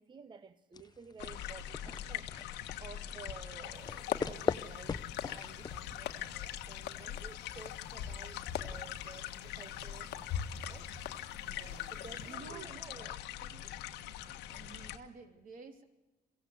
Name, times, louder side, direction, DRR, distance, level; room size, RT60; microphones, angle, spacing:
voice 1, 0.0-13.7, right 5 dB, 25° right, 0.9 m, -53 dB
sound 1, 0.7-6.4, left 5 dB, 25° left, 0.6 m, -40 dB
sound 2, 1.2-15.0, left 11 dB, 90° left, 1.4 m, -43 dB
sound 3, 3.7-12.3, left 9 dB, 70° left, 1.4 m, -44 dB
voice 2, 11.4-12.7 14.5-15.8, right 5 dB, 55° right, 3.3 m, -52 dB
23.0 x 16.0 x 8.1 m
cardioid pair, 110°, 17 cm